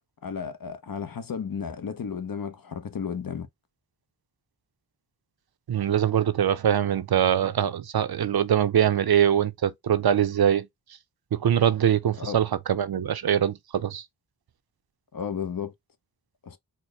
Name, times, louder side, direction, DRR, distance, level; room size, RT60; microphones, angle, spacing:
voice 1, 0.2-3.5 12.2-12.4 15.1-15.7 16.4-16.6, left 6 dB, 60° left, 0.7 m, -33 dB
voice 2, 5.7-10.7 11.3-14.0, right 9 dB, 70° right, 0.6 m, -23 dB
4.3 x 2.1 x 3.1 m
wide cardioid pair, 70°, 39 cm